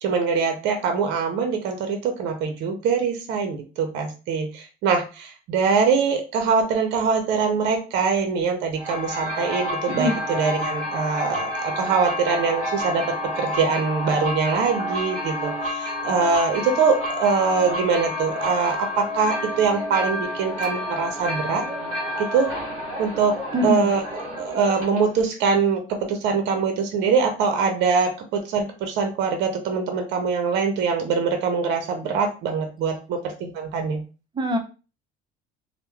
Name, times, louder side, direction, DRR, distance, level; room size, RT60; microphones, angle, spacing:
voice 1, 0.0-13.0 13.4-21.6 22.2-22.5 23.0-23.3 23.6-34.0, right 5 dB, 65° right, 5 dB, 0.6 m, -23 dB
sound 1, 8.8-25.2, left 1 dB, 40° right, 1.4 m, -29 dB
voice 2, 23.5-23.9 34.4-34.6, left 1 dB, 25° right, 4 dB, 0.6 m, -23 dB
2.9 x 2.1 x 2.3 m, 0.32 s
cardioid pair, 100°, 19 cm